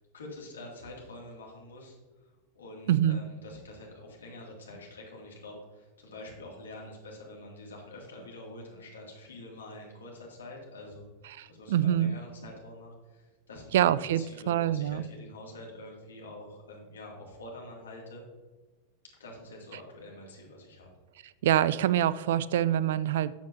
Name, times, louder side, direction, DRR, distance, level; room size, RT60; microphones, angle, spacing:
voice 1, 0.0-11.1 11.5-18.2 19.2-20.9, left 1 dB, 70° left, -1 dB, 2.3 m, -46 dB
voice 2, 2.9-3.2 11.3-12.2 13.7-14.2 14.5-15.0 21.4-23.5, right 11 dB, 55° right, 18 dB, 0.3 m, -25 dB
12.0 x 7.1 x 2.7 m, 1.3 s
figure-of-eight pair, 90°, 0 cm